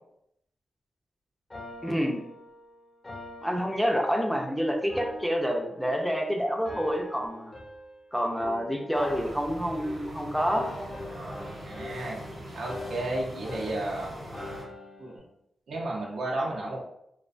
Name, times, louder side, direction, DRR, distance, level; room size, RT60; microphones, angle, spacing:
sound 1, 1.5-4.4 4.9-6.2 6.7-8.0 8.4-10.1 10.5-15.2, left 2 dB, 40° left, 0.6 m, -44 dB
voice 1, 1.8-2.2 3.4-7.5 8.1-10.7, equal, ahead, 1 dB, 0.4 m, -28 dB
sound 2, 8.9-14.6, equal, 65° right, 1.0 m, -41 dB
voice 2, 11.6-12.2 12.5-14.2 15.0-15.2 15.7-16.8, right 1 dB, 85° right, -3 dB, 0.6 m, -32 dB
2.4 x 2.2 x 2.4 m, 0.77 s
cardioid pair, 55°, 0 cm